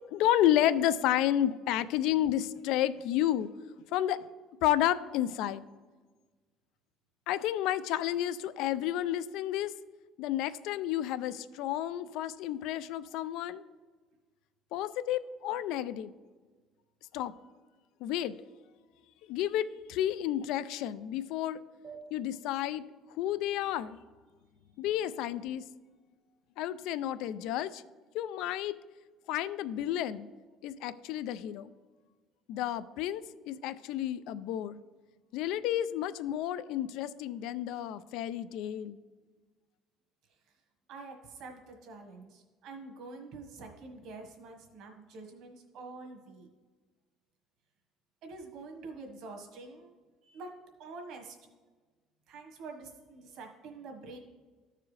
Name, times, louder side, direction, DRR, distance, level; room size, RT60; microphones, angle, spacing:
voice 1, 0.1-3.5 3.9-4.2 4.6-5.6 7.3-9.7 10.2-13.6 14.7-16.1 17.1-17.3 18.0-18.4 19.3-21.6 22.1-22.9 23.2-24.0 24.8-25.6 26.6-27.8 28.1-28.8 29.3-30.3 30.6-31.7 32.5-34.8 35.3-39.0, left 12 dB, 75° left, 16 dB, 0.3 m, -31 dB
sound 1, 21.8-24.8, right 5 dB, 35° right, 0.8 m, -54 dB
voice 2, 40.9-46.5 48.2-49.9 50.2-50.5 50.8-51.4 52.3-54.2, right 3 dB, 60° right, 2 dB, 1.4 m, -46 dB
14.0 x 4.7 x 3.2 m, 1.4 s
cardioid pair, 165°, 0 cm